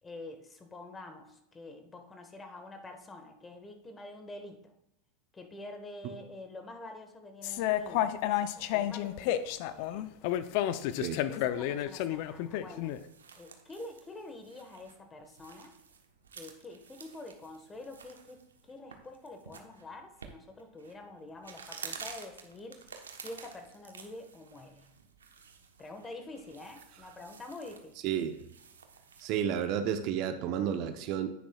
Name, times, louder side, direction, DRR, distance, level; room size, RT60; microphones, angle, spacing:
voice 1, 0.0-4.7 5.3-10.3 10.9-13.0 13.4-15.7 16.4-22.9 23.2-24.9 25.8-28.0, left 2 dB, 20° left, 5 dB, 1.4 m, -47 dB
sound 1, 7.4-13.0, left 12 dB, 55° left, 0.6 m, -31 dB
sound 2, 12.7-29.4, right 6 dB, 85° right, 1.1 m, -51 dB
voice 2, 28.0-28.4 29.2-31.3, right 9 dB, 50° right, 8 dB, 0.8 m, -31 dB
10.0 x 9.2 x 2.4 m, 0.83 s
hypercardioid pair, 95°, 0 cm